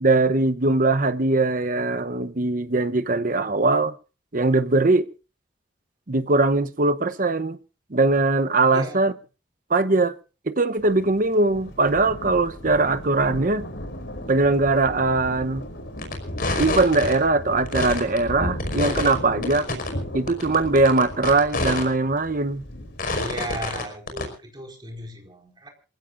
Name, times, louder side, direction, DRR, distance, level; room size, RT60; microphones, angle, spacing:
voice 1, 0.0-3.9 4.3-5.1 6.1-7.6 7.9-9.1 9.7-10.2 10.5-13.6 14.3-15.6 16.6-19.7 20.1-22.6, right 3 dB, 50° right, 1.0 m, -21 dB
voice 2, 8.7-9.1 23.2-25.7, right 1 dB, 25° right, 4.8 m, -36 dB
Thunder, 10.8-23.1, equal, 75° left, 3.4 m, -35 dB
sound 1, 16.0-16.1 16.4-17.1 17.6-18.2 18.6-19.1 19.4-19.9 20.3-21.8 22.2-22.3 23.0-23.8 24.1-24.2, left 2 dB, 55° left, 5.2 m, -26 dB
27.5 x 16.0 x 2.6 m
head